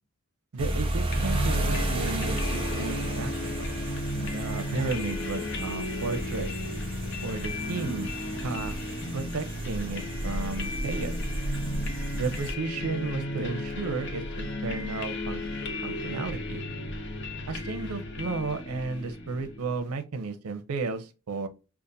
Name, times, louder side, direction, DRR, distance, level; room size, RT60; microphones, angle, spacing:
voice 1, 0.5-3.7 4.2-6.5 7.2-8.1 8.4-8.8 9.1-11.2 12.1-16.6 17.5-21.5, right 3 dB, 85° right, 0.5 m, -33 dB
sound 1, 0.6-12.5, right 1 dB, 25° right, 0.7 m, -33 dB
sound 2, 1.1-19.8, left 1 dB, 50° left, 0.7 m, -34 dB
5.2 x 2.4 x 2.6 m
head